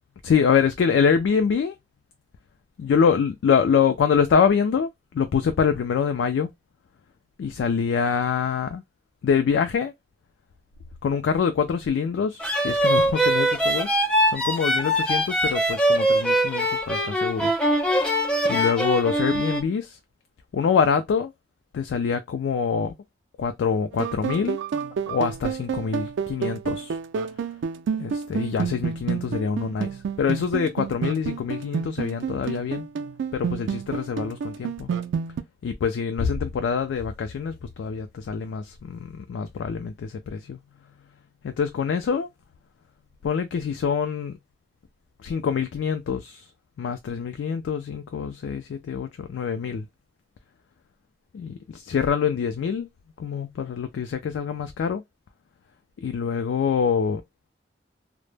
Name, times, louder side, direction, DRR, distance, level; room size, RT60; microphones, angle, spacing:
voice 1, 0.2-1.8 2.8-6.5 7.4-8.8 9.2-9.9 11.0-13.9 14.3-17.5 18.5-20.0 20.5-21.3 21.7-22.9 23.4-24.6 25.1-27.0 28.0-32.9 33.3-34.9 35.6-40.6 41.4-42.3 43.2-44.4 45.2-46.5 46.8-49.9 51.3-52.9 53.2-55.0 56.0-57.2, left 6 dB, 85° left, 0.3 m, -25 dB
sound 1, 12.4-19.6, right 1 dB, 5° left, 0.3 m, -22 dB
sound 2, 23.9-35.4, right 6 dB, 90° right, 0.3 m, -29 dB
2.0 x 2.0 x 3.1 m
head